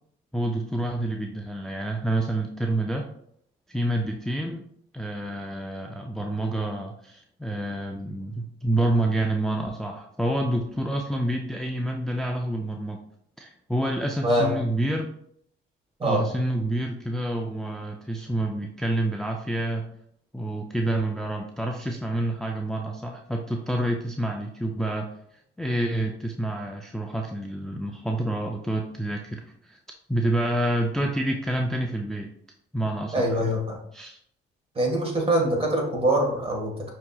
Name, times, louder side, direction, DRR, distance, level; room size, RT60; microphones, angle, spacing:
voice 1, 0.3-3.1 3.7-4.7 4.9-13.0 13.4-15.1 16.0-19.8 20.3-25.1 25.6-29.8 30.1-32.3 32.7-33.5 33.9-34.2, right 1 dB, ahead, 2 dB, 0.3 m, -28 dB
voice 2, 14.2-14.5 16.0-16.3 33.1-33.8 34.7-36.9, right 1 dB, 30° right, 0 dB, 1.3 m, -24 dB
5.7 x 2.8 x 2.3 m, 0.69 s
cardioid pair, 90°, 20 cm